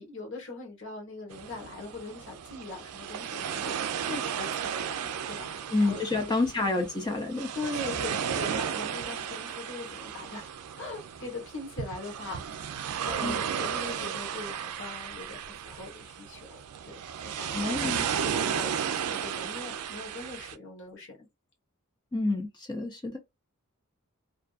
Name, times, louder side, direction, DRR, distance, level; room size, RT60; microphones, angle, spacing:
voice 1, 0.0-6.3 7.5-16.6 16.8-17.0 17.2-21.3, left 3 dB, 55° left, 1.1 m, -41 dB
sound 1, 1.3-20.6, right 8 dB, 90° right, 0.4 m, -34 dB
voice 2, 5.7-7.5 13.2-13.4 17.5-18.1 22.1-23.2, left 2 dB, 20° left, 0.4 m, -29 dB
2.5 x 2.3 x 2.4 m
head